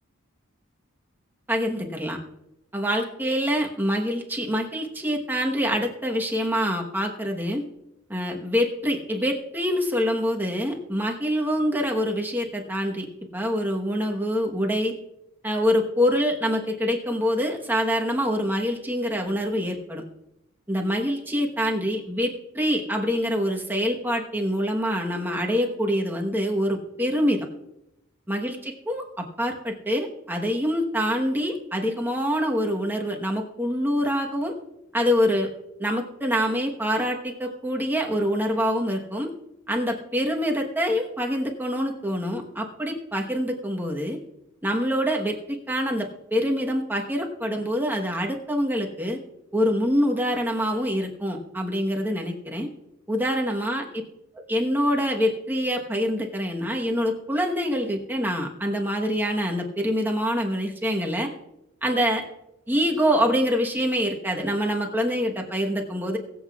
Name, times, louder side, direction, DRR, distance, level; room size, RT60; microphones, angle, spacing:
voice 1, 1.5-2.2 2.7-7.6 8.1-13.1 13.3-14.9 15.4-20.0 20.7-27.4 28.3-34.5 34.9-35.5 35.8-39.3 39.7-44.2 44.6-49.2 49.5-52.7 53.1-53.8 54.5-61.3 61.8-62.2 62.7-66.2, equal, 10° right, 1 dB, 1.1 m, -25 dB
23.0 x 8.0 x 2.4 m, 0.87 s
head